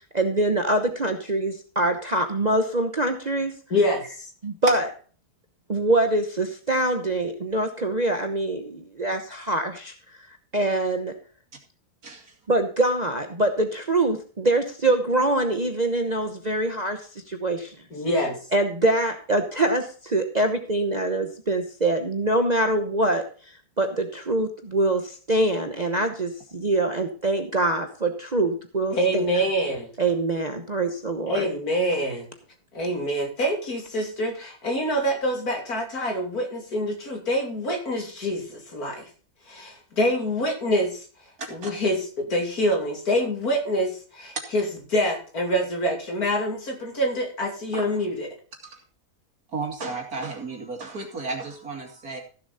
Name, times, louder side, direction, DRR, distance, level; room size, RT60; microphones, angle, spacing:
voice 1, 0.1-3.5 4.4-4.9 5.7-9.9 10.5-11.1 12.5-17.0 17.3-17.7 18.5-23.2 23.8-29.2 30.0-31.5, right 2 dB, 30° right, 5 dB, 1.0 m, -24 dB
voice 2, 3.7-4.3 17.9-18.4 28.9-29.9 31.3-32.3 32.7-39.0 39.5-41.0 41.5-48.3, equal, 70° left, 2 dB, 3.2 m, -26 dB
voice 3, 12.0-12.3 41.4-41.7 48.6-48.8 49.5-52.2, right 3 dB, 70° right, 2 dB, 3.0 m, -33 dB
15.0 x 7.2 x 4.1 m, 0.39 s
omnidirectional pair, 1.6 m